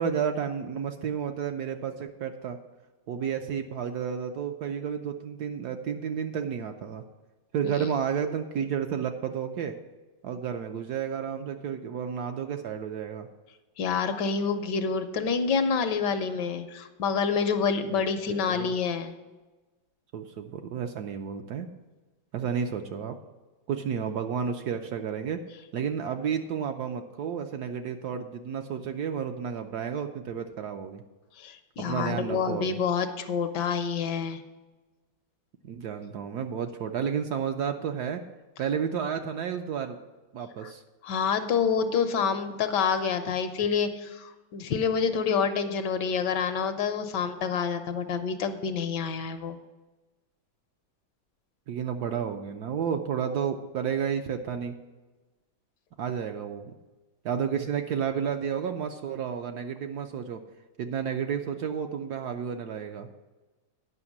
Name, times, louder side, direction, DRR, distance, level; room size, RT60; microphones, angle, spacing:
voice 1, 0.0-2.6 3.1-7.0 7.5-9.7 10.2-13.3 17.9-18.8 20.1-21.7 22.3-23.2 23.7-25.4 25.7-31.0 31.8-32.8 35.6-38.2 38.6-40.0 40.3-40.8 51.7-54.7 56.0-56.7 57.2-60.4 60.8-63.1, right 7 dB, 70° right, 6 dB, 1.0 m, -31 dB
voice 2, 13.8-19.1 31.4-34.4 40.6-40.7 41.0-49.6, left 6 dB, 70° left, 9 dB, 1.2 m, -27 dB
9.7 x 5.7 x 7.2 m, 1.2 s
omnidirectional pair, 2.1 m